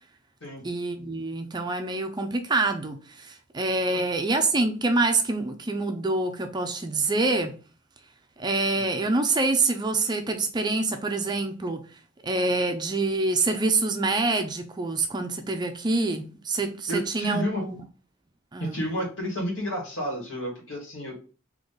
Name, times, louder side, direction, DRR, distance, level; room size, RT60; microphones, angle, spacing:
voice 1, 0.6-7.5 8.4-11.9 12.2-17.8 18.5-18.8, right 3 dB, 20° right, 0.4 m, -26 dB
voice 2, 16.9-17.6 18.6-21.2, equal, 65° left, 2.1 m, -31 dB
3.8 x 2.9 x 3.8 m
head